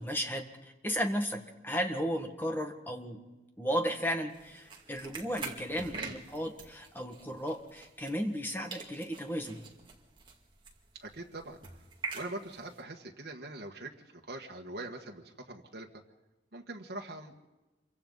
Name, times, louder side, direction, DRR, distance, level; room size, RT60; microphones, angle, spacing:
voice 1, 0.0-3.2 3.6-9.6, equal, 10° left, 4 dB, 1.7 m, -34 dB
sound 1, 4.3-8.4 8.7-12.8, right 4 dB, 25° right, 2.3 m, -45 dB
voice 2, 10.9-11.6 12.1-16.0 16.5-17.5, right 2 dB, 65° right, 0 dB, 1.7 m, -43 dB
27.5 x 24.0 x 4.0 m, 1.1 s
head